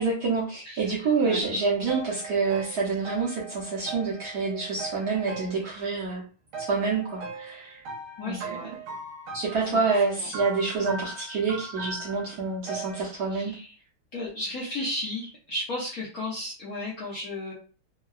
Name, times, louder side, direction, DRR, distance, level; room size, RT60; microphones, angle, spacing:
voice 1, 0.0-6.2 6.6-7.8 8.2-8.4 9.3-13.5, right 4 dB, 60° right, -6 dB, 1.1 m, -27 dB
voice 2, 0.6-1.4 8.2-8.7 9.7-10.3 13.3-13.8 14.1-17.5, left 1 dB, 65° left, -6 dB, 0.9 m, -34 dB
sound 1, 1.4-6.2 6.5-13.1, right 4 dB, 80° right, 1.5 m, -40 dB
3.7 x 2.2 x 2.3 m, 0.37 s
omnidirectional pair, 2.4 m